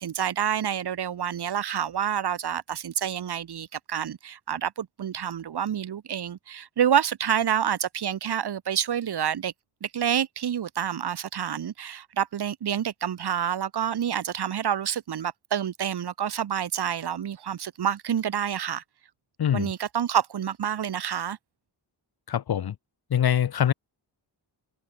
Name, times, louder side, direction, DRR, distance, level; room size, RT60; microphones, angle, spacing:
voice 1, 0.0-9.5 9.8-18.8 19.5-21.4, right 9 dB, 60° right, 0.8 m, -28 dB
voice 2, 19.4-19.7 22.3-22.7 23.1-23.7, left 9 dB, 55° left, 0.6 m, -24 dB
wide cardioid pair, 145°, 45 cm